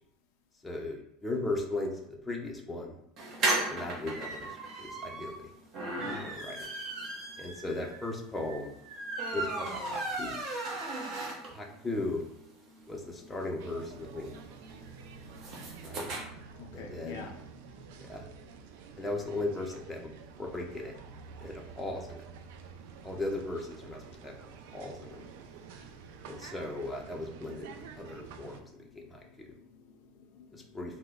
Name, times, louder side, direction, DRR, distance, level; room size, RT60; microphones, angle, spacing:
voice 1, 0.6-3.0 3.7-5.4 6.1-6.7 7.4-8.7 9.3-10.4 11.5-12.2 12.9-14.4 15.8-16.1 16.7-17.3 18.0-18.3 19.0-20.9 21.4-22.2 23.0-24.3 24.7-25.2 26.3-29.5 30.5-31.0, left 2 dB, 10° left, 0 dB, 0.5 m, -37 dB
sound 1, 3.2-11.7 12.1-12.2 12.5-12.6 12.8-16.2, right 2 dB, 45° right, 0.8 m, -36 dB
voice 2, 6.0-6.7 16.6-17.3 29.5-31.0, left 5 dB, 75° left, 3 dB, 0.4 m, -48 dB
sound 2, 13.6-28.6, right 6 dB, 75° right, 0.3 m, -49 dB
2.9 x 2.1 x 3.6 m, 0.74 s
supercardioid pair, 135°, 0 cm